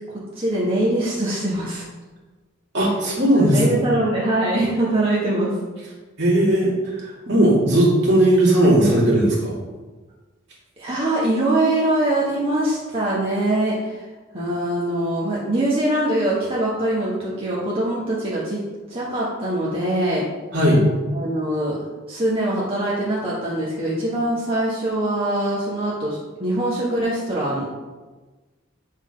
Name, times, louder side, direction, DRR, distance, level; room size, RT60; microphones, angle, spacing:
voice 1, 0.3-1.8 3.3-5.5 10.8-14.0 14.3-18.6 18.9-20.2 21.1-21.8 22.1-27.7, right 1 dB, 30° right, -7 dB, 1.3 m, -23 dB
voice 2, 2.7-3.7 6.2-9.5 20.5-20.8, right 1 dB, 60° right, -5 dB, 2.4 m, -17 dB
8.0 x 3.8 x 5.2 m, 1.3 s
head